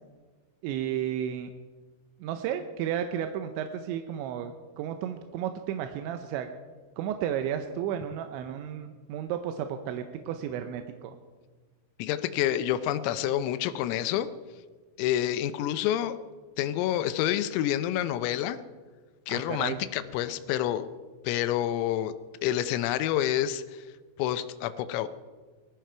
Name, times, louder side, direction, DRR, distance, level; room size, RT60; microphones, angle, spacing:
voice 1, 0.6-1.5 2.2-6.5 7.0-11.2 19.3-19.8, right 9 dB, 80° right, 7 dB, 2.8 m, -33 dB
voice 2, 12.0-14.3 15.0-16.2 16.6-18.6 19.3-20.9 21.2-22.1 22.4-23.8 24.2-25.1, left 12 dB, 90° left, 12 dB, 3.4 m, -28 dB
19.5 x 14.5 x 4.5 m, 1.4 s
omnidirectional pair, 5.8 m